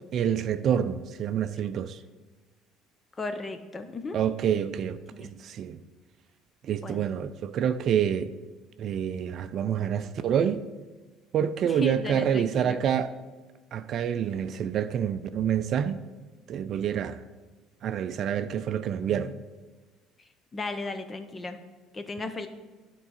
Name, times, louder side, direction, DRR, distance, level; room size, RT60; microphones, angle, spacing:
voice 1, 0.1-2.0 4.1-5.8 6.6-8.3 8.8-10.6 11.3-13.1 13.7-16.0 16.5-17.2 17.8-19.4, right 8 dB, 55° right, 0.4 m, -27 dB
voice 2, 3.2-4.2 5.1-5.3 6.8-7.1 11.6-12.8 20.2-21.6 21.9-22.5, left 3 dB, 30° left, 0.8 m, -36 dB
11.0 x 3.8 x 4.2 m
hypercardioid pair, 65°, 0 cm